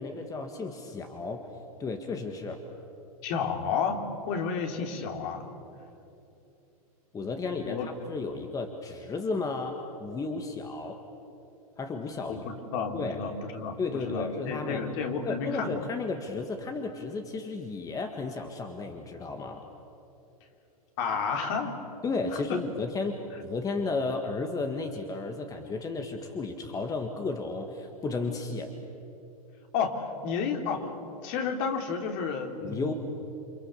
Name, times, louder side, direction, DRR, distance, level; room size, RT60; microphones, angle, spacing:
voice 1, 0.0-1.5 1.8-2.6 7.1-11.0 11.8-12.4 12.9-13.2 13.8-14.8 15.2-19.7 22.0-28.7 32.6-32.9, left 3 dB, 20° left, 5 dB, 1.8 m, -33 dB
voice 2, 3.2-5.5 7.7-7.9 12.3-15.8 21.0-21.8 22.3-22.6 29.7-30.9 31.2-32.9, left 5 dB, 50° left, 3 dB, 3.5 m, -31 dB
29.5 x 26.0 x 7.0 m, 2.8 s
hypercardioid pair, 115°, 19 cm